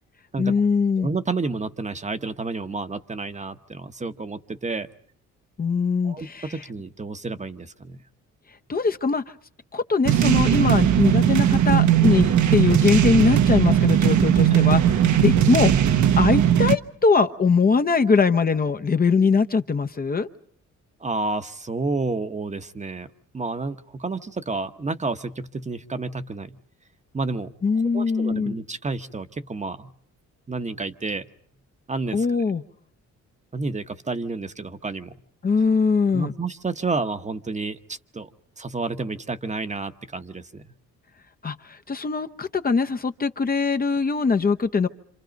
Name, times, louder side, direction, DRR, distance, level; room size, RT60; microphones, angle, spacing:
voice 1, 0.4-1.1 5.6-6.6 8.7-9.2 9.7-15.7 16.2-20.3 27.6-28.6 32.1-32.6 35.4-36.3 41.4-44.9, left 5 dB, 30° left, 8 dB, 0.9 m, -22 dB
voice 2, 1.0-4.9 6.0-8.0 14.5-14.7 15.0-15.1 21.0-23.1 23.3-26.6 27.1-27.5 27.9-29.9 30.5-31.2 31.9-32.3 33.5-35.1 36.1-38.3 38.6-40.6, right 3 dB, 25° right, 9 dB, 1.1 m, -30 dB
sound 1, 10.0-16.7, right 10 dB, 70° right, 1.1 m, -18 dB
27.5 x 27.0 x 5.3 m, 0.62 s
cardioid pair, 90°, 30 cm